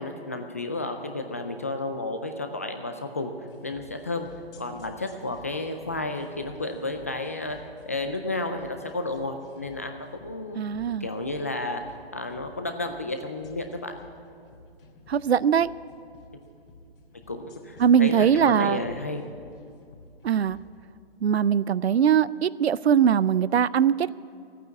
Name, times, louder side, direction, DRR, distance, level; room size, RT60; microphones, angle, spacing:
voice 1, 0.0-3.3 3.6-4.3 4.6-7.6 7.9-10.6 11.0-11.8 12.1-13.9 17.3-19.2, left 2 dB, 15° left, 6 dB, 0.3 m, -32 dB
sound 1, 3.5-20.6, left 3 dB, 60° left, 3.0 m, -51 dB
voice 2, 10.6-11.1 15.1-15.7 17.8-18.8 20.2-20.6 21.2-24.1, right 8 dB, 80° right, 19 dB, 0.5 m, -21 dB
14.0 x 9.2 x 9.4 m, 2.4 s
figure-of-eight pair, 140°, 31 cm